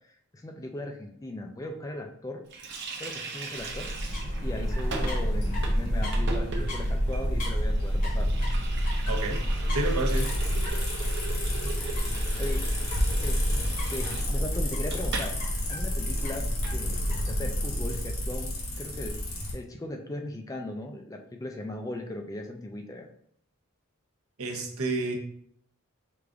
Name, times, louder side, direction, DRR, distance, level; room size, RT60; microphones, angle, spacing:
voice 1, 0.0-2.4 3.0-3.9 4.4-8.3 11.6-12.6 13.1-13.5 13.9-15.4 15.7-19.2 19.5-23.1, left 1 dB, 15° left, 4 dB, 0.3 m, -38 dB
Water tap faucet, 2.5-15.4 15.6-15.8 16.1-16.8, right 3 dB, 50° right, 0.7 m, -40 dB
sound 1, 3.6-18.8, equal, 40° left, 1.0 m, -29 dB
voice 2, 9.1-9.4 9.7-10.3 24.4-25.1, right 2 dB, 75° right, 1 dB, 0.9 m, -30 dB
sound 2, 10.1-19.5, left 2 dB, 70° left, 1.5 m, -35 dB
4.9 x 2.5 x 3.4 m, 0.65 s
head